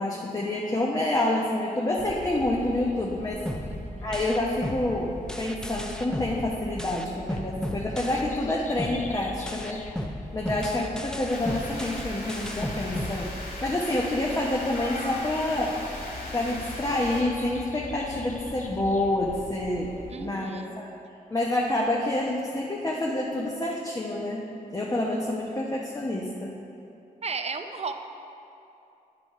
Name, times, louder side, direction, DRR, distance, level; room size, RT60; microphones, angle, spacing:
voice 1, 0.0-3.4 4.0-9.8 10.3-15.8 16.3-20.9 21.3-24.4 24.7-26.6, left 1 dB, 20° left, -3 dB, 0.9 m, -28 dB
sound 1, 2.0-20.2, left 2 dB, 55° left, 0.7 m, -43 dB
sound 2, 3.5-8.5 8.8-13.8, equal, 5° left, 0.5 m, -35 dB
voice 2, 3.6-4.1 10.5-10.9 20.1-20.8 27.2-27.9, right 4 dB, 45° right, 7 dB, 0.5 m, -35 dB
sound 3, 11.3-17.2, left 1 dB, 70° left, 1.6 m, -39 dB
9.7 x 5.2 x 4.6 m, 2.8 s
cardioid pair, 75°, 16 cm